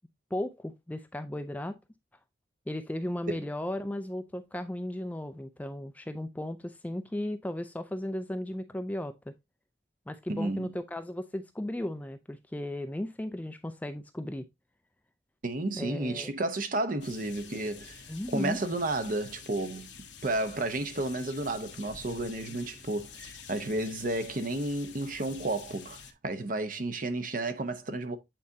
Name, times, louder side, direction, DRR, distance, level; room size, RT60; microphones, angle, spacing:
voice 1, 0.3-1.8 2.7-9.3 10.1-14.4 15.8-16.3 18.1-18.6, left 1 dB, 10° left, 0.3 m, -35 dB
voice 2, 10.3-10.7 15.4-19.9 20.2-28.2, right 2 dB, 45° right, 0.8 m, -32 dB
sound 1, 17.0-26.1, left 7 dB, 70° left, 1.0 m, -48 dB
8.6 x 4.2 x 2.7 m
head